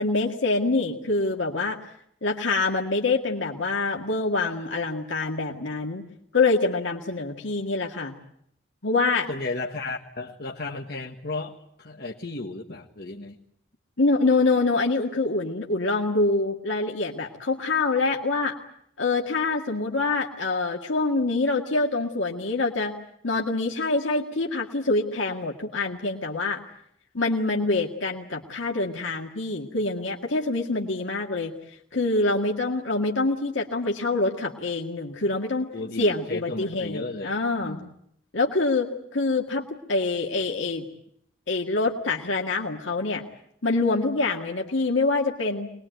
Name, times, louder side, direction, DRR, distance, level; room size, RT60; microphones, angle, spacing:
voice 1, 0.0-1.8 2.2-6.1 6.3-8.1 8.8-9.3 14.0-18.5 19.0-22.9 23.2-26.6 27.1-31.5 31.9-35.7 36.0-37.8 38.3-40.9 41.5-43.2 43.6-45.7, left 3 dB, 90° left, 0 dB, 2.0 m, -25 dB
voice 2, 9.3-13.3 35.7-37.9, left 2 dB, 55° left, -1 dB, 1.6 m, -34 dB
24.0 x 20.5 x 9.2 m, 0.72 s
head